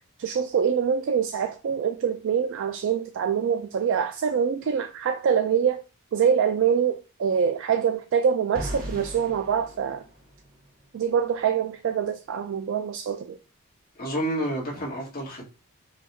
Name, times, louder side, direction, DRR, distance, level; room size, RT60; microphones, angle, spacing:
voice 1, 0.2-5.8 6.1-10.0 10.9-13.4, right 7 dB, 60° right, 0.3 m, -25 dB
sound 1, 8.6-10.7, equal, 45° right, 1.2 m, -37 dB
voice 2, 14.0-15.5, right 1 dB, 45° left, 1.6 m, -29 dB
5.2 x 2.4 x 2.6 m
head